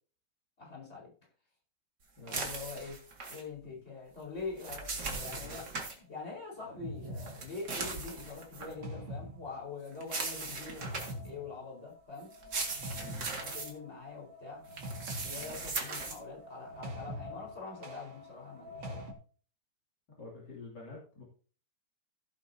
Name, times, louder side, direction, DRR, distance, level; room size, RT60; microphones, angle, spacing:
voice 1, 0.6-1.1 2.3-3.0 3.3-12.3 13.4-14.6 15.2-19.0, left 4 dB, 35° left, -2 dB, 5.0 m, -44 dB
sound 1, 2.3-3.4 4.4-6.0 7.2-8.7 10.0-11.3 12.3-13.7 14.7-16.2, right 3 dB, 65° right, 2.8 m, -39 dB
voice 2, 5.0-5.6 12.9-13.3 15.4-15.6 20.2-21.2, left 3 dB, 70° left, -3 dB, 3.5 m, -49 dB
sound 2, 5.2-5.6 6.6-19.1, equal, 85° right, 2.7 m, -45 dB
16.0 x 8.5 x 2.8 m, 0.40 s
omnidirectional pair, 1.9 m